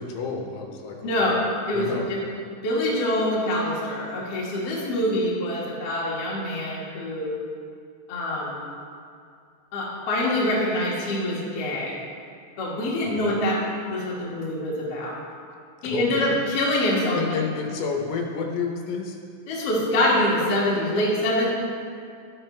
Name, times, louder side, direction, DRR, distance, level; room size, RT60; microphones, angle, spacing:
voice 1, 0.0-1.3 1.7-2.1 13.0-13.3 15.8-16.4 17.1-19.2, left 5 dB, 80° left, 1 dB, 3.4 m, -30 dB
voice 2, 1.0-1.4 1.7-2.2 2.6-7.4 8.1-8.6 9.7-11.9 12.6-13.6 13.9-15.1 15.8-17.2 19.5-21.5, left 1 dB, 60° left, -6 dB, 1.6 m, -25 dB
11.5 x 10.5 x 3.3 m, 2.3 s
omnidirectional pair, 5.9 m